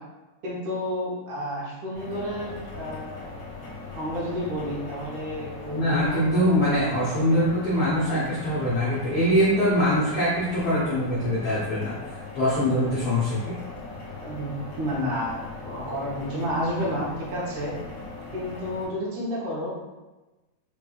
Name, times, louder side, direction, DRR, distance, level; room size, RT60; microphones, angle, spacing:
voice 1, 0.4-3.3 3.9-7.0 7.3-7.4 8.1-8.2 14.2-14.5 14.8-17.7 18.3-19.8, equal, 70° right, -6 dB, 2.1 m, -31 dB
sound 1, 2.0-18.9, left 3 dB, 60° left, 2.2 m, -40 dB
voice 2, 5.7-12.0 12.3-13.5, equal, 75° left, -8 dB, 1.2 m, -23 dB
5.8 x 3.1 x 2.3 m, 1.1 s
omnidirectional pair, 3.9 m